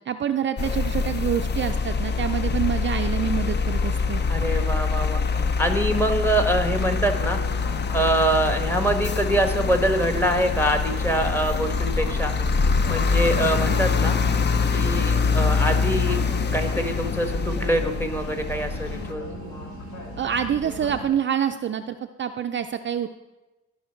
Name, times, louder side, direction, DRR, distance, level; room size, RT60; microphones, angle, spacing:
voice 1, 0.1-4.2 20.2-23.1, right 9 dB, 40° right, 7 dB, 0.4 m, -26 dB
sound 1, 0.6-19.1, left 5 dB, 35° left, 0.6 m, -24 dB
voice 2, 4.3-5.2 5.6-7.4 7.9-12.3 12.9-14.1 14.7-16.2 16.5-19.3, right 1 dB, 10° left, 5 dB, 1.2 m, -24 dB
sound 2, 6.6-21.1, equal, 80° left, 2.2 m, -37 dB
14.0 x 4.9 x 4.4 m, 1.1 s
cardioid pair, 90°, 30 cm